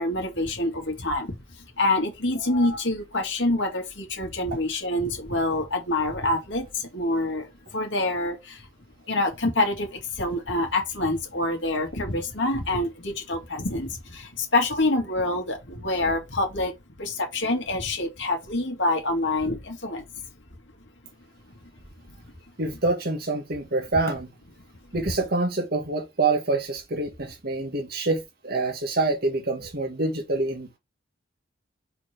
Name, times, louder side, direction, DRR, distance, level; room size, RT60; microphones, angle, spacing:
voice 1, 0.0-1.4 1.8-8.6 9.1-16.7 17.0-20.0, left 2 dB, 70° left, 2.2 m, -26 dB
voice 2, 22.6-24.3 24.9-30.8, right 3 dB, 55° right, 1.7 m, -26 dB
4.8 x 4.0 x 5.1 m
head